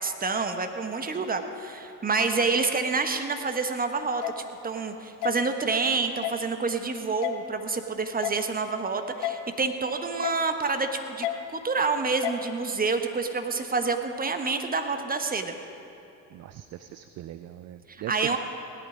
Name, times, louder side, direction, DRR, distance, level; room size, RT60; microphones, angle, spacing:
voice 1, 0.0-11.3 11.5-15.5 17.9-18.4, right 4 dB, 20° right, 7 dB, 1.2 m, -28 dB
sound 1, 4.2-4.3 5.2-5.3 6.2-6.4 7.2-7.3 8.2-8.4 9.2-9.3 10.2-10.4 11.2-11.3 12.2-12.4, left 14 dB, 65° left, 1.0 m, -29 dB
voice 2, 16.3-18.4, right 13 dB, 35° right, 11 dB, 0.5 m, -40 dB
17.0 x 11.5 x 5.0 m, 3.0 s
hypercardioid pair, 65°, 48 cm